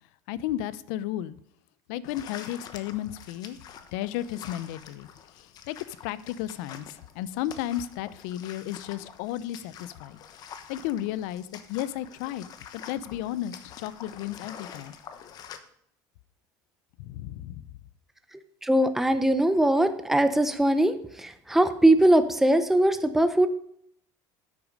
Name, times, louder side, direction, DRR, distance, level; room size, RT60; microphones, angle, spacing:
voice 1, 0.3-1.3 1.9-3.6 3.9-5.1 5.4-5.8 6.0-10.2 10.7-12.5 12.7-14.9 17.0-17.6, left 12 dB, 80° left, 17 dB, 0.6 m, -33 dB
sound 1, 2.0-15.6, left 8 dB, 45° left, 1.0 m, -46 dB
voice 2, 18.6-23.5, right 1 dB, 5° right, 9 dB, 0.7 m, -21 dB
9.8 x 8.5 x 5.3 m, 0.68 s
cardioid pair, 135°, 9 cm